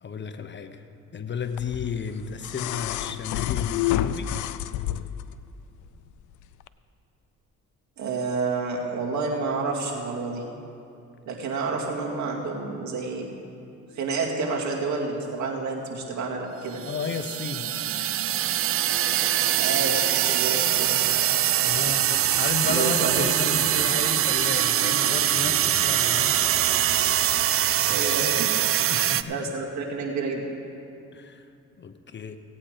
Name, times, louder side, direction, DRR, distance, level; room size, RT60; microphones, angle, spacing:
voice 1, 0.0-0.8 1.1-4.3 16.8-18.2 19.2-19.3 21.0-21.1 21.6-26.9 27.9-28.1 28.9-29.5 31.1-31.5 31.8-32.4, left 5 dB, 35° left, 8 dB, 0.8 m, -33 dB
sound 1, 1.6-5.3 6.6-6.7, left 12 dB, 80° left, 0.5 m, -29 dB
voice 2, 8.0-10.4 11.3-13.3 13.9-16.8 19.5-21.0 21.9-22.0 22.6-23.3 27.9-28.5 28.9-30.5, right 4 dB, 70° right, -1 dB, 2.2 m, -29 dB
sound 2, 16.8-29.2, right 11 dB, 50° right, 0.4 m, -23 dB
17.0 x 8.8 x 5.0 m, 2.6 s
cardioid pair, 90°, 30 cm